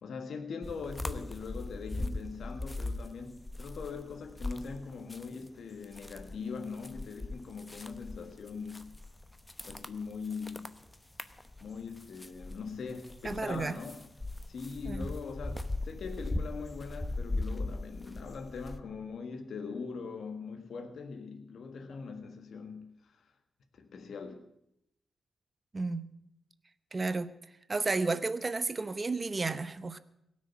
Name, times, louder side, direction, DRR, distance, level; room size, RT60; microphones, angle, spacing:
voice 1, 0.0-8.9 9.6-10.7 11.6-14.1 14.5-23.2 23.7-24.5, left 5 dB, 75° left, 6 dB, 1.5 m, -41 dB
sound 1, 0.6-5.5 5.8-18.8, left 2 dB, 15° left, 0.9 m, -39 dB
voice 2, 13.2-13.8 14.8-15.1 25.7-26.1 26.9-27.3 27.7-30.0, right 3 dB, 35° right, 14 dB, 0.8 m, -32 dB
17.5 x 6.4 x 9.4 m, 0.81 s
cardioid pair, 90°, 0 cm